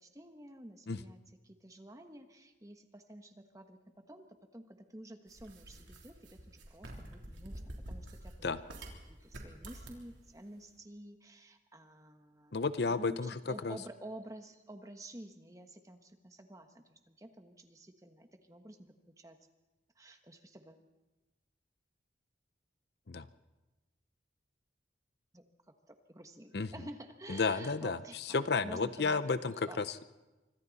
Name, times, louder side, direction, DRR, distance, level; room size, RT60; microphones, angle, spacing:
voice 1, 0.0-3.8 4.1-12.6 13.0-19.4 19.9-20.8 25.3-28.2 28.6-29.2 29.7-29.8, right 1 dB, 20° right, 6 dB, 1.3 m, -51 dB
sound 1, 5.3-9.0 9.3-10.0, right 1 dB, 80° right, 3.3 m, -47 dB
voice 2, 12.5-13.3 13.6-13.8 23.1-23.3 26.5-26.7 27.3-28.0 28.3-30.0, left 4 dB, 60° left, 13 dB, 0.6 m, -32 dB
26.0 x 24.5 x 4.1 m, 1.1 s
head